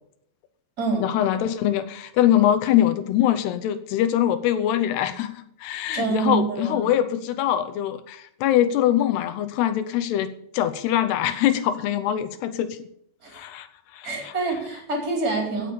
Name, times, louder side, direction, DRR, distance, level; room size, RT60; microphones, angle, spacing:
voice 1, 1.0-12.9 13.3-13.7 13.9-14.3, left 11 dB, 75° left, 12 dB, 2.7 m, -23 dB
voice 2, 5.9-6.9 13.2-13.4 14.0-15.7, right 3 dB, 20° right, 2 dB, 3.9 m, -26 dB
15.5 x 7.5 x 6.9 m, 0.70 s
omnidirectional pair, 5.2 m